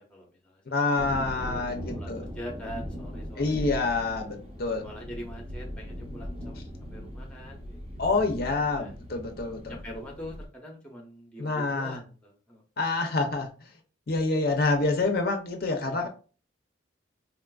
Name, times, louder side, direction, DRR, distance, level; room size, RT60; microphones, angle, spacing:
voice 1, 0.0-0.6 1.0-3.8 4.8-6.6 6.9-8.0 8.7-9.0 9.7-12.9 15.8-16.1, equal, 5° left, 0 dB, 0.6 m, -44 dB
voice 2, 0.7-2.2 3.4-4.9 8.0-9.8 11.4-12.0 12.8-13.7 14.1-16.1, left 3 dB, 50° left, 4 dB, 0.5 m, -27 dB
sound 1, 1.0-10.5, equal, 30° right, 0.6 m, -39 dB
3.8 x 2.4 x 2.2 m, 0.36 s
head